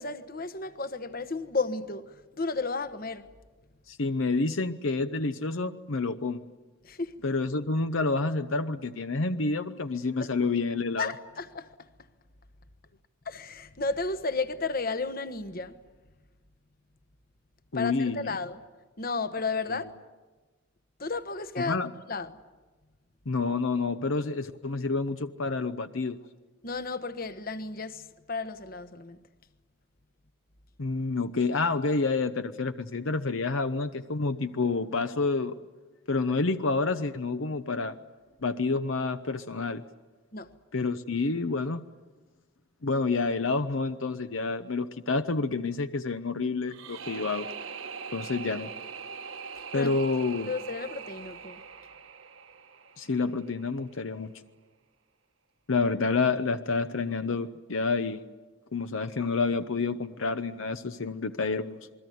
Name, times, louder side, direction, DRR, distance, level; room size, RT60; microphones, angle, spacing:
voice 1, 0.0-3.3 6.8-7.1 10.2-10.3 11.0-11.7 13.2-15.8 17.7-18.6 19.0-19.9 21.0-21.8 22.1-22.3 26.6-29.2 40.3-40.5 49.7-50.0 50.5-51.6, left 3 dB, 45° left, 1.2 m, -33 dB
voice 2, 3.9-6.4 7.2-11.1 17.7-18.3 21.6-21.9 23.3-26.2 30.8-35.6 36.1-38.0 38.4-39.8 40.7-41.8 42.8-47.5 48.1-48.7 49.7-50.5 53.0-54.3 55.7-58.2 58.7-61.8, left 3 dB, 70° left, 0.8 m, -28 dB
sound 1, 46.7-53.7, right 6 dB, 70° right, 1.3 m, -42 dB
28.0 x 21.5 x 9.4 m
head